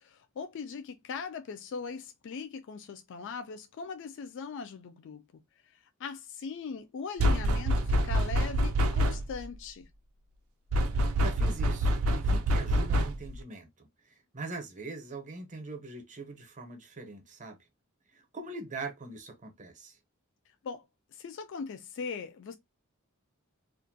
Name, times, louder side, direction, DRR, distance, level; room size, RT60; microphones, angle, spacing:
voice 1, 0.0-5.2 5.6-9.9 20.6-20.9 21.1-22.6, left 5 dB, 60° left, 0.3 m, -40 dB
sound 1, 7.2-9.4 10.7-13.4, equal, 80° right, 0.4 m, -26 dB
voice 2, 11.2-17.6 18.1-20.0, right 3 dB, 35° right, 0.7 m, -42 dB
2.4 x 2.1 x 2.5 m
head